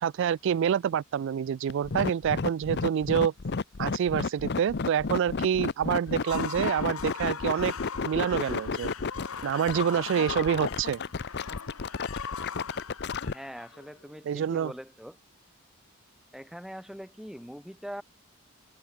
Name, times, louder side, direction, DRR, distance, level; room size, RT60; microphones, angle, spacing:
voice 1, 0.0-3.3 3.8-7.7 8.1-8.9 9.4-11.0 14.3-14.7, right 8 dB, 60° right, 0.3 m, -27 dB
sound 1, 1.7-13.3, left 4 dB, 55° left, 0.7 m, -32 dB
sound 2, 6.1-14.2, left 6 dB, 90° left, 1.2 m, -40 dB
voice 2, 13.2-15.2 16.3-18.0, equal, ahead, 3.0 m, -42 dB
open air
head